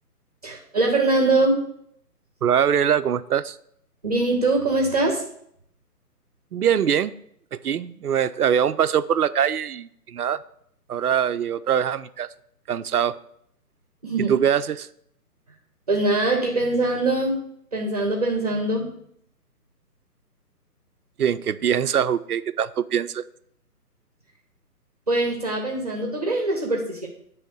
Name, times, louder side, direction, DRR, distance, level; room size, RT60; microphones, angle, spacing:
voice 1, 0.4-1.6 4.0-5.2 14.0-14.3 15.9-17.4 17.7-18.9 25.1-27.1, right 2 dB, 25° right, 1 dB, 0.7 m, -22 dB
voice 2, 2.4-3.6 6.5-7.2 7.5-10.4 10.9-12.3 12.7-13.2 14.3-14.9 21.2-23.2, right 8 dB, 70° right, 14 dB, 0.5 m, -23 dB
9.0 x 3.1 x 6.2 m, 0.70 s
figure-of-eight pair, 140°, 48 cm